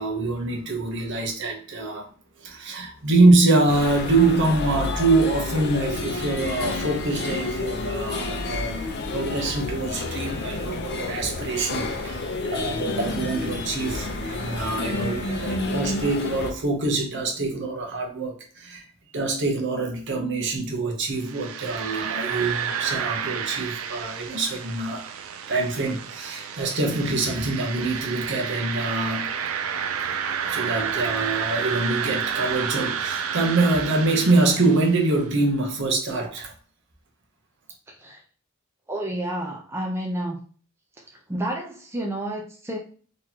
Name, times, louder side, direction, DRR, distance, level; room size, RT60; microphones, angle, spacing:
voice 1, 0.0-2.1 2.4-8.9 9.1-18.9 19.1-25.1 25.5-29.3 30.4-36.5, right 2 dB, 60° right, 0.9 m, -24 dB
sound 1, 3.7-16.5, left 2 dB, 55° left, 0.6 m, -30 dB
sound 2, 21.2-35.2, right 7 dB, 85° right, 0.4 m, -30 dB
voice 2, 38.9-40.4 41.3-42.8, right 1 dB, 10° right, 0.6 m, -30 dB
3.9 x 3.1 x 2.8 m
head